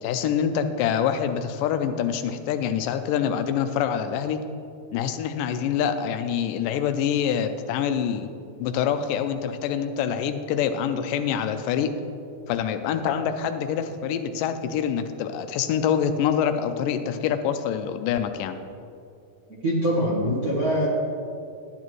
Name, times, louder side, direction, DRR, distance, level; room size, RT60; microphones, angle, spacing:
voice 1, 0.0-4.4 4.9-8.3 8.6-11.9 12.5-18.6, left 8 dB, 85° left, 8 dB, 2.2 m, -25 dB
voice 2, 19.6-20.9, equal, 50° right, -9 dB, 1.1 m, -23 dB
11.5 x 9.9 x 3.1 m, 2.5 s
omnidirectional pair, 3.9 m